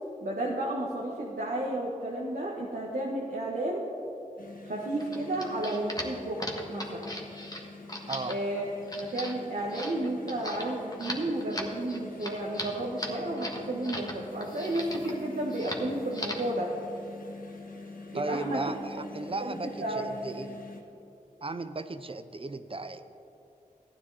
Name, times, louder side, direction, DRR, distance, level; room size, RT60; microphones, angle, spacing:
voice 1, 0.2-3.8 4.6-6.4 6.7-7.1 8.3-8.7 9.0-16.7 18.1-18.6 19.4-20.1, right 1 dB, 75° right, -3 dB, 1.3 m, -32 dB
sound 1, 4.4-20.8, left 3 dB, 70° left, 1.2 m, -46 dB
sound 2, 5.0-14.1 14.4-15.2 15.5-15.8 16.1-16.5, left 1 dB, 25° left, 1.5 m, -38 dB
voice 2, 18.1-20.6 21.4-23.0, right 3 dB, 40° right, 10 dB, 0.6 m, -36 dB
14.5 x 9.7 x 4.0 m, 2.8 s
cardioid pair, 40°, 15 cm